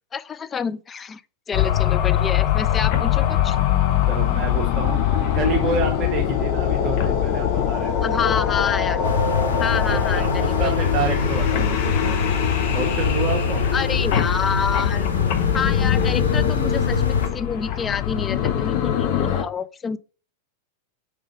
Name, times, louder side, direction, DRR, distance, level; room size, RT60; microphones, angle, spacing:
voice 1, 0.1-1.2 1.5-3.6 8.0-9.0 9.6-10.7 11.0-11.1 13.7-15.1 15.5-20.0, left 6 dB, 20° left, 0.4 m, -28 dB
sound 1, 1.5-19.4, left 10 dB, 45° left, 1.0 m, -23 dB
voice 2, 4.1-8.1 9.5-12.3 12.7-13.6, right 5 dB, 35° right, 1.1 m, -29 dB
sound 2, 9.0-17.3, left 5 dB, 70° left, 1.0 m, -24 dB
5.1 x 3.8 x 5.2 m
figure-of-eight pair, 90°, 0 cm